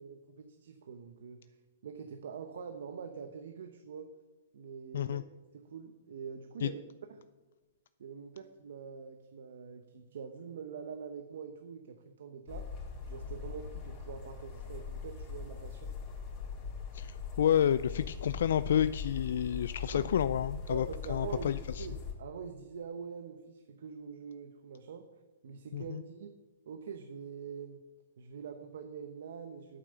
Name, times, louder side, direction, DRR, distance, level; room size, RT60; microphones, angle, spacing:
voice 1, 0.0-1.6 1.8-4.1 4.5-5.2 5.5-6.8 7.1-7.3 8.0-12.7 13.1-15.9 19.9-20.2 20.7-25.1 25.4-26.3 26.7-27.8 28.2-29.8, right 6 dB, 75° right, 7 dB, 0.9 m, -45 dB
sound 1, 12.5-22.1, left 6 dB, 30° left, 3.6 m, -41 dB
voice 2, 16.9-21.9 25.7-26.0, left 9 dB, 70° left, 14 dB, 0.3 m, -30 dB
8.9 x 8.6 x 6.8 m, 1.2 s
hypercardioid pair, 140°, 0 cm